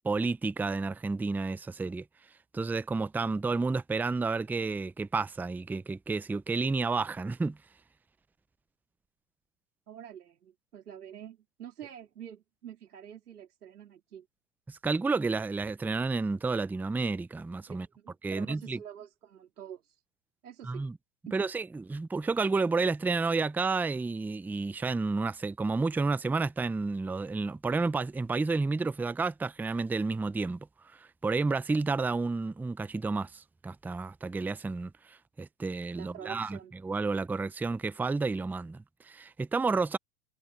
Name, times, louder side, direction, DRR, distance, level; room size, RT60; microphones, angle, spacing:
voice 1, 0.0-2.0 2.5-7.6 14.7-17.9 18.2-18.8 20.6-21.0 21.3-30.7 30.9-36.6 36.8-40.0, right 3 dB, 5° right, 0.5 m, -31 dB
voice 2, 9.9-14.3 17.7-20.0 20.4-20.9 21.3-21.4 36.0-36.7, right 9 dB, 90° right, 3.8 m, -47 dB
hypercardioid pair, 110°, 44 cm